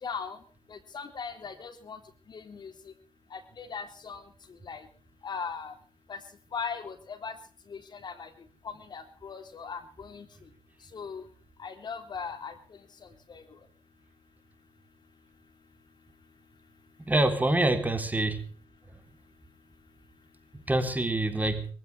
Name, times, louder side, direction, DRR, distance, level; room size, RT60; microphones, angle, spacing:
voice 1, 0.0-0.4 0.7-2.0 2.3-2.9 3.3-4.3 4.6-4.9 5.2-5.7 6.1-6.2 6.5-7.4 7.7-8.3 8.6-10.3 10.9-11.2 11.6-12.6 13.3-13.4, left 6 dB, 55° left, 8 dB, 3.5 m, -39 dB
voice 2, 17.0-18.4 20.7-21.7, right 2 dB, 20° right, 8 dB, 3.6 m, -26 dB
23.5 x 15.5 x 3.4 m, 0.40 s
supercardioid pair, 55°, 9 cm